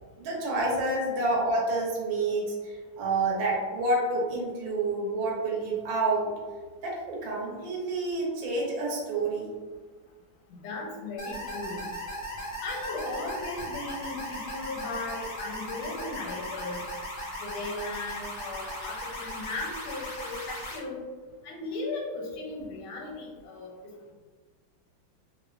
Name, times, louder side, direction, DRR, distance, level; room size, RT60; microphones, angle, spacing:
voice 1, 0.2-6.3 6.8-9.6, right 2 dB, 75° right, -3 dB, 1.4 m, -28 dB
voice 2, 10.6-11.9 12.6-16.8 17.4-21.0 21.4-23.9, left 2 dB, 85° left, -1 dB, 1.4 m, -37 dB
sound 1, 11.2-20.8, equal, 65° left, 0.7 m, -37 dB
3.3 x 2.1 x 2.3 m, 1.4 s
omnidirectional pair, 2.1 m